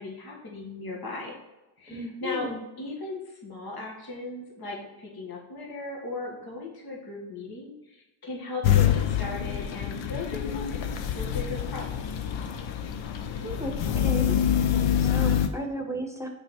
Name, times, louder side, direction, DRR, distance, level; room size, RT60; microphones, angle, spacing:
voice 1, 0.0-1.3 1.8-2.5 2.8-12.0, left 2 dB, 55° left, -2 dB, 1.8 m, -37 dB
voice 2, 1.9-2.6 13.4-14.4 15.0-16.3, right 1 dB, 5° right, 2 dB, 1.2 m, -34 dB
sound 1, 8.6-15.5, left 9 dB, 75° left, 0.7 m, -26 dB
6.2 x 4.8 x 4.3 m, 0.99 s
supercardioid pair, 45°, 45 cm